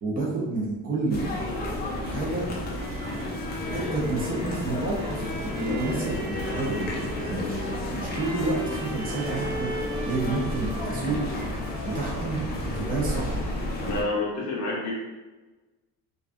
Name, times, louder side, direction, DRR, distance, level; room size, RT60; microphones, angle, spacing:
voice 1, 0.0-1.3 2.0-2.5 3.6-9.7 10.0-11.3 11.8-13.5, right 3 dB, 25° right, -3 dB, 0.5 m, -30 dB
sound 1, 1.1-14.0, left 1 dB, 30° left, 0.3 m, -32 dB
sound 2, 2.6-13.2, right 1 dB, 85° right, 0.7 m, -39 dB
sound 3, 3.9-12.9, left 3 dB, 75° left, 0.7 m, -43 dB
voice 2, 13.8-14.9, left 2 dB, 45° left, -4 dB, 0.9 m, -28 dB
2.3 x 2.3 x 2.4 m, 1.2 s
cardioid pair, 150°, 37 cm